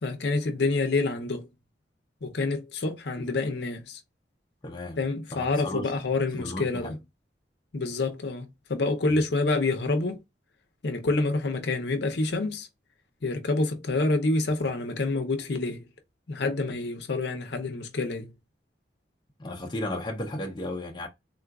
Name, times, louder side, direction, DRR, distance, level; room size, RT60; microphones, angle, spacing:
voice 1, 0.0-1.5 2.2-4.0 5.0-7.0 7.7-10.2 10.8-12.7 13.2-15.9 16.3-18.3, left 3 dB, 65° left, 0.6 m, -27 dB
voice 2, 4.6-5.0 5.3-5.9 6.4-7.0 9.1-9.2 19.4-21.1, left 1 dB, 25° left, 0.6 m, -34 dB
3.7 x 2.4 x 2.3 m
head